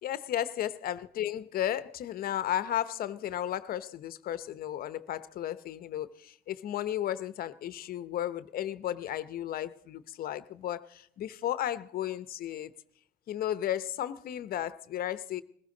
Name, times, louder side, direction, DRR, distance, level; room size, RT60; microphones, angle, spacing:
voice 1, 0.0-12.7 13.3-15.4, left 11 dB, 60° left, 0.8 m, -34 dB
21.0 x 15.0 x 3.8 m
cardioid pair, 110°, 17 cm